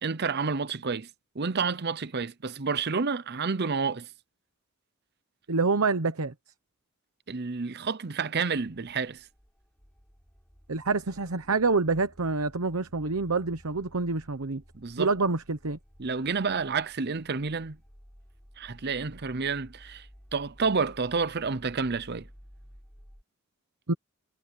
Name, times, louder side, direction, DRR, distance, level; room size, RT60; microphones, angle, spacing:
voice 1, 0.0-1.1 1.3-4.1 7.3-9.3 14.7-15.1 16.0-17.8 18.6-20.1 20.3-22.3, right 5 dB, 50° right, 0.7 m, -29 dB
voice 2, 5.5-6.3 10.7-14.6 15.0-15.8 23.9-24.0, right 3 dB, 80° right, 1.0 m, -27 dB
sound 1, 8.5-23.2, equal, 5° left, 6.9 m, -55 dB
head